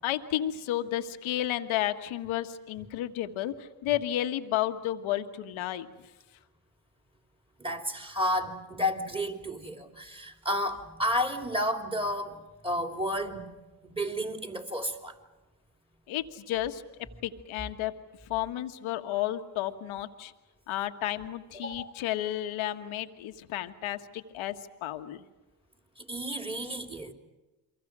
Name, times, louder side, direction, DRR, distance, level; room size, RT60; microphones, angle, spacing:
voice 1, 0.0-5.9 16.1-16.8 17.2-17.9 18.2-20.3 20.7-25.2, left 13 dB, 75° left, 7 dB, 1.6 m, -32 dB
voice 2, 7.6-13.5 13.8-15.1 21.5-21.9 26.0-27.1, equal, 10° right, 4 dB, 3.4 m, -32 dB
30.0 x 23.5 x 6.2 m, 1.1 s
supercardioid pair, 75°, 49 cm